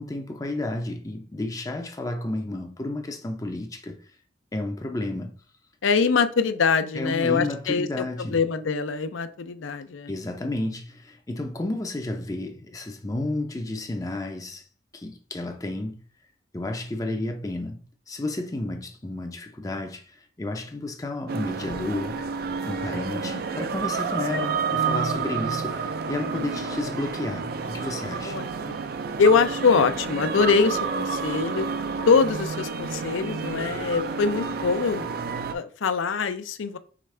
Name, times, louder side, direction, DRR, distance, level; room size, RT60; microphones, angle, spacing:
voice 1, 0.0-4.0 4.5-5.3 6.9-8.4 10.1-14.7 14.9-16.0 16.5-17.8 18.1-22.2 22.7-28.4, left 2 dB, 20° left, 0.4 m, -32 dB
voice 2, 5.8-10.1 23.1-23.2 26.4-26.8 28.2-28.8 29.2-31.7 32.1-35.1 35.5-36.8, left 5 dB, 90° left, 0.5 m, -23 dB
sound 1, 21.3-35.5, right 5 dB, 50° right, 0.3 m, -30 dB
4.9 x 3.3 x 3.2 m
head